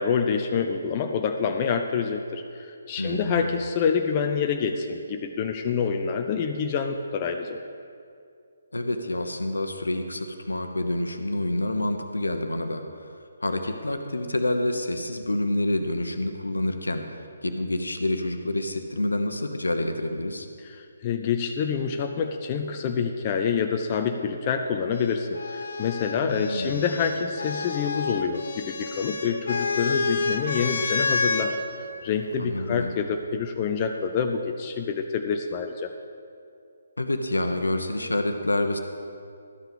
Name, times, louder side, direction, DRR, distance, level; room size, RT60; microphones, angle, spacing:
voice 1, 0.0-7.6 20.6-31.5 32.0-35.9, left 6 dB, 25° left, 4 dB, 0.5 m, -27 dB
voice 2, 3.0-3.5 8.7-12.8 13.4-17.0 17.4-20.5 26.2-26.8 32.4-32.9 37.0-38.8, left 1 dB, 75° left, 6 dB, 0.9 m, -27 dB
sound 1, 24.9-31.5 32.6-33.3, left 4 dB, 55° left, 1.2 m, -29 dB
12.5 x 5.7 x 7.1 m, 2.4 s
figure-of-eight pair, 140°, 0 cm